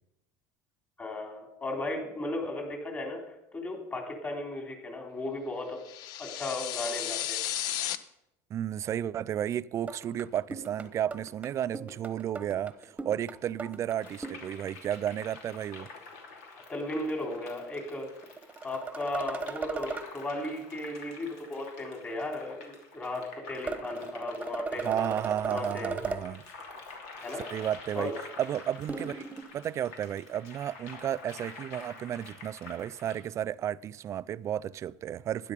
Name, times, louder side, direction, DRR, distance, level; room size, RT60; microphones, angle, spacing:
voice 1, 1.0-5.8 6.2-7.4 16.7-18.1 18.6-25.1 25.5-26.0 27.2-27.4 28.0-28.2, left 2 dB, 20° left, 3.4 m, -36 dB
sound 1, 5.8-8.0, left 12 dB, 65° left, 0.7 m, -33 dB
voice 2, 8.5-15.9 24.8-26.4 27.5-28.1 28.4-29.3 29.5-35.5, right 10 dB, 40° right, 0.4 m, -33 dB
sound 2, 9.9-14.5 18.2-20.1 23.7-26.3 28.9-29.4, right 4 dB, 15° right, 1.1 m, -37 dB
sound 3, 14.0-33.2, left 4 dB, 80° left, 3.0 m, -48 dB
12.5 x 10.0 x 5.3 m
supercardioid pair, 105°, 8 cm